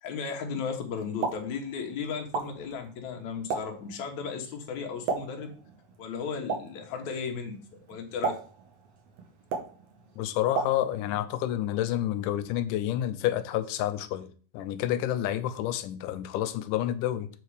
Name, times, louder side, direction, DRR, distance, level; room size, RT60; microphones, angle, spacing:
voice 1, 0.0-5.5 6.0-7.6 7.9-8.3, left 5 dB, 65° left, 2.5 m, -35 dB
Explosion, 1.0-11.2, right 5 dB, 60° right, 2.1 m, -37 dB
voice 2, 10.2-14.3 14.5-17.3, left 12 dB, 85° left, 2.2 m, -29 dB
8.0 x 4.7 x 4.8 m
omnidirectional pair, 3.7 m